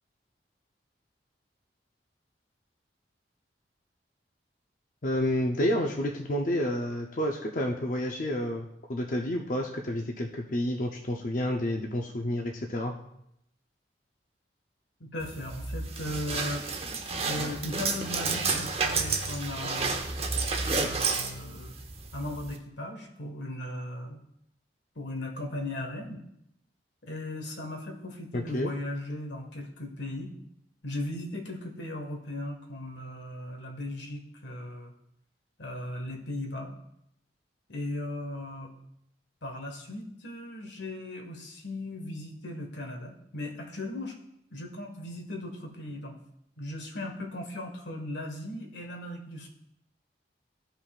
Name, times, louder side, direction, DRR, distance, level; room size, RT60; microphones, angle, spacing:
voice 1, 5.0-12.9 28.3-28.7, left 1 dB, 45° left, 1 dB, 0.6 m, -30 dB
voice 2, 15.0-16.6 17.2-20.0 20.7-21.7 22.1-24.2 24.9-26.2 27.0-30.3 30.8-34.9 35.6-36.8 37.7-38.7 39.4-44.1 44.5-46.2 46.6-49.5, left 1 dB, 90° left, 2 dB, 1.5 m, -37 dB
sound 1, 15.2-22.6, right 4 dB, 35° right, 0.8 m, -31 dB
14.5 x 5.5 x 2.4 m, 0.78 s
head